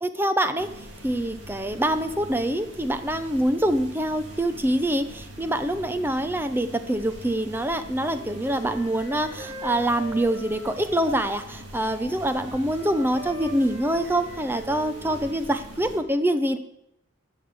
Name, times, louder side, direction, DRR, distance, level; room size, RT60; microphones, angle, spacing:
voice 1, 0.0-0.7 1.0-16.6, right 1 dB, 10° right, 9 dB, 0.6 m, -25 dB
sound 1, 0.6-16.0, equal, 55° right, 2.9 m, -43 dB
Wind instrument woodwind instrument, 8.0-11.5 11.7-15.3, right 2 dB, 75° right, 3.3 m, -42 dB
12.0 x 7.0 x 8.1 m, 0.79 s
head